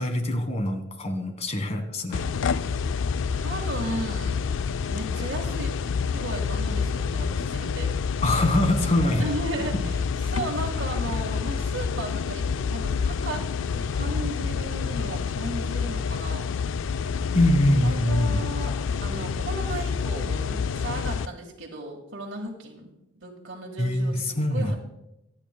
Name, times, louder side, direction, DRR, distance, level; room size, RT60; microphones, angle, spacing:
voice 1, 0.0-2.2 8.2-9.3 17.3-18.4 23.8-24.7, left 1 dB, 35° left, 7 dB, 1.4 m, -23 dB
sound 1, 2.1-21.3, left 5 dB, 70° left, 0.3 m, -28 dB
voice 2, 3.3-4.4 4.9-5.7 6.1-7.9 9.2-16.5 17.8-24.7, right 1 dB, 75° right, -2 dB, 1.7 m, -35 dB
25.5 x 9.0 x 2.2 m, 0.88 s
head